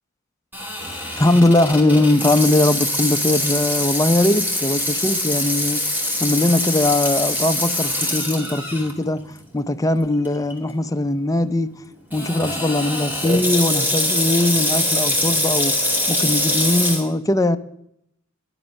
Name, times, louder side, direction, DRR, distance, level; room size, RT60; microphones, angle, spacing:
Water tap faucet / Sink (filling or washing), 0.5-8.9 9.4-9.5 10.3-10.5 12.1-17.0, left 1 dB, 10° right, 2.5 m, -23 dB
voice 1, 0.8-5.8 6.2-9.2 9.5-11.8 12.1-17.6, left 1 dB, 15° left, 0.5 m, -20 dB
11.0 x 11.0 x 6.4 m
head